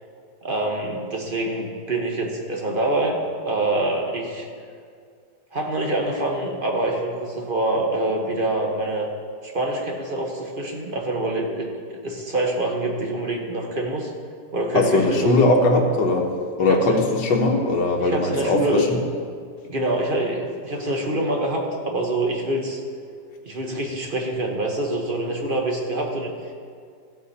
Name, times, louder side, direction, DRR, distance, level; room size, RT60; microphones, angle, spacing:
voice 1, 0.4-3.2 3.4-4.5 5.5-9.1 9.4-14.1 14.5-15.4 16.7-17.0 18.0-18.8 19.7-22.8 23.4-26.3, right 1 dB, 35° right, 0 dB, 1.0 m, -25 dB
voice 2, 14.7-16.3 16.6-19.0, left 2 dB, 75° left, 2 dB, 1.8 m, -20 dB
14.0 x 8.1 x 4.2 m, 2.2 s
omnidirectional pair, 2.0 m